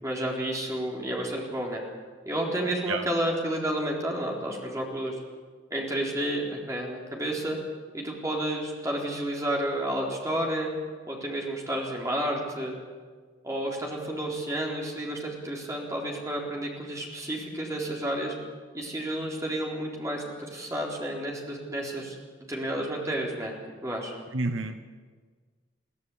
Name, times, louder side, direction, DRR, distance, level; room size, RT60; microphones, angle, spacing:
voice 1, 0.0-1.8 2.3-5.1 5.7-7.6 7.9-10.7 11.1-12.8 13.4-18.3 18.7-22.2 22.5-23.5 23.8-24.1, right 1 dB, 15° right, -2 dB, 3.9 m, -31 dB
voice 2, 24.3-24.9, right 3 dB, 80° right, 9 dB, 1.2 m, -29 dB
23.0 x 15.5 x 8.7 m, 1.5 s
head